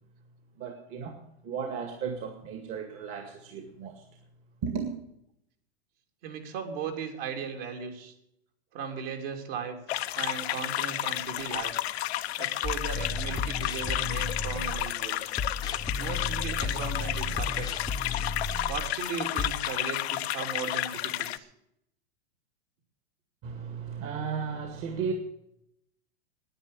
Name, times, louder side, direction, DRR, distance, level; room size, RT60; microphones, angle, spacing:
voice 1, 0.6-4.1 4.6-5.0 23.4-25.1, right 6 dB, 40° right, 2.1 m, -35 dB
voice 2, 6.2-8.1 8.7-9.8 10.2-11.7 12.4-15.3 16.0-17.7 18.7-21.5, right 6 dB, 60° right, 3.2 m, -37 dB
sound 1, 9.9-21.4, left 14 dB, 70° left, 0.8 m, -32 dB
sound 2, 12.6-14.9 15.4-18.9 19.4-19.6, left 3 dB, 10° left, 0.9 m, -34 dB
10.5 x 9.5 x 10.0 m
hypercardioid pair, 120°, 33 cm